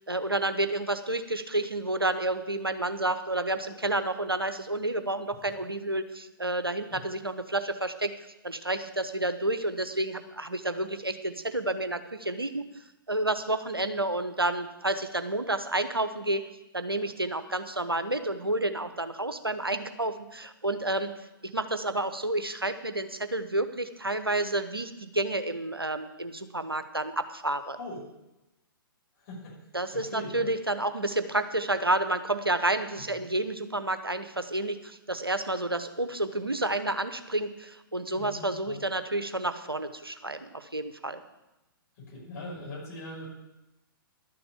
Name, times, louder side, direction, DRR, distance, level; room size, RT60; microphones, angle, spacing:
voice 1, 0.0-8.1 8.4-12.6 13.1-16.4 16.7-21.1 21.4-27.8 29.7-41.2, right 2 dB, 90° right, 10 dB, 1.0 m, -30 dB
voice 2, 29.9-30.5 32.9-33.0 38.1-38.8 42.1-43.3, left 1 dB, 40° left, -2 dB, 5.9 m, -41 dB
12.0 x 6.9 x 8.2 m, 0.96 s
figure-of-eight pair, 115°, 12 cm